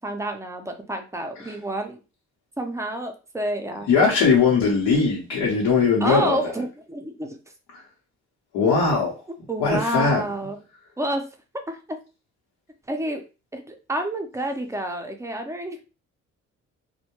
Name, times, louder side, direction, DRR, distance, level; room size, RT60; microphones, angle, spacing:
voice 1, 0.0-2.0 2.6-3.9 6.0-7.4 9.5-10.6 11.0-11.3 11.5-12.0 12.9-13.2 13.5-15.8, right 1 dB, 10° right, 0.5 m, -29 dB
voice 2, 3.9-6.4 7.7-7.8 8.5-9.2 9.6-10.2, left 5 dB, 90° left, 0.8 m, -20 dB
2.1 x 2.1 x 2.9 m
cardioid pair, 90°, 30 cm